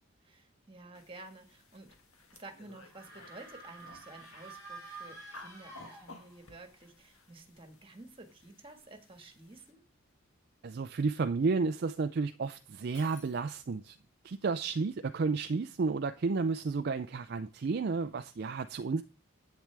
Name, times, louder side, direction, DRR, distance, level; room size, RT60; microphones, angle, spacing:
voice 1, 0.2-2.0 2.3-9.8, right 2 dB, 25° right, 1.6 m, -52 dB
sound 1, 0.9-9.7, left 3 dB, 85° left, 1.7 m, -57 dB
sound 2, 2.9-6.6, right 3 dB, 15° left, 4.4 m, -49 dB
voice 2, 10.6-14.0 14.2-19.0, right 4 dB, 50° right, 0.4 m, -32 dB
Shatter, 12.9-14.0, left 3 dB, 65° left, 4.3 m, -57 dB
10.5 x 8.6 x 3.4 m
head